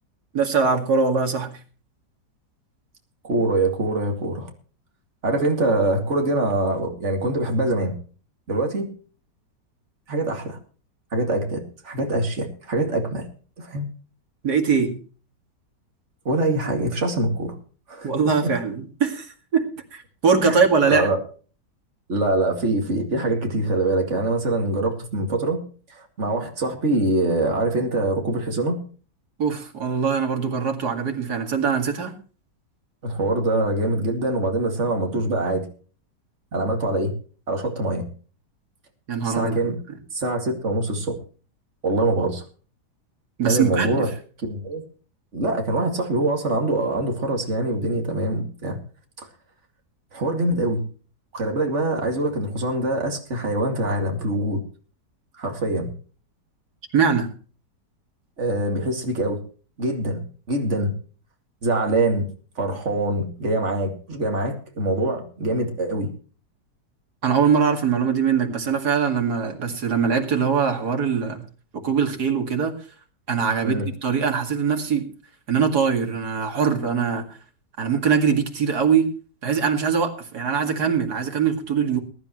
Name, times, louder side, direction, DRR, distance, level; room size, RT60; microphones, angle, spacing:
voice 1, 0.3-1.6 14.4-15.0 18.0-19.7 19.9-21.1 29.4-32.1 39.1-39.7 43.4-44.0 56.9-57.3 67.2-71.5 71.7-72.7 73.3-75.1 75.5-77.3 77.8-79.1 79.4-82.0, right 6 dB, 65° right, 4 dB, 2.7 m, -22 dB
voice 2, 3.2-4.5 5.2-7.9 8.5-8.9 10.1-10.6 11.1-13.3 13.6-13.9 16.2-17.5 17.9-18.5 20.4-21.2 22.1-25.6 25.9-28.8 33.0-35.7 36.5-37.1 37.5-38.0 39.2-39.8 40.1-41.2 41.8-42.4 43.5-44.1 44.4-44.8 45.3-48.8 49.2-49.3 50.1-50.8 51.3-54.6 55.4-55.9 58.4-59.4 59.8-60.2 60.5-60.9 61.6-62.3 62.6-66.1 73.6-73.9, right 2 dB, 40° right, 3 dB, 2.7 m, -24 dB
21.5 x 11.0 x 3.1 m, 0.39 s
omnidirectional pair, 1.9 m